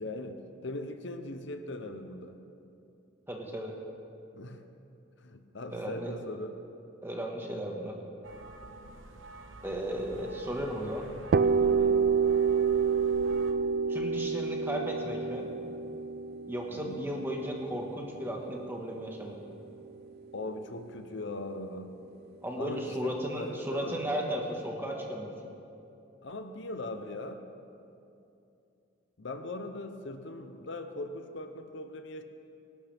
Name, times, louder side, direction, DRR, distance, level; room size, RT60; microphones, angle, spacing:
voice 1, 0.0-2.4 4.3-4.6 5.2-6.5 11.6-12.0 16.7-17.0 20.3-21.9 22.5-24.1 26.2-27.4 29.2-32.2, left 2 dB, 60° left, 7 dB, 0.9 m, -40 dB
voice 2, 3.3-3.8 5.7-6.1 7.0-8.0 9.6-11.1 13.9-15.5 16.5-19.4 22.4-25.3, equal, 10° right, 0 dB, 1.6 m, -35 dB
sound 1, 8.2-13.5, right 2 dB, 75° right, 1.1 m, -47 dB
sound 2, 11.3-19.0, right 5 dB, 50° right, 0.3 m, -28 dB
24.0 x 12.0 x 3.5 m, 2.7 s
head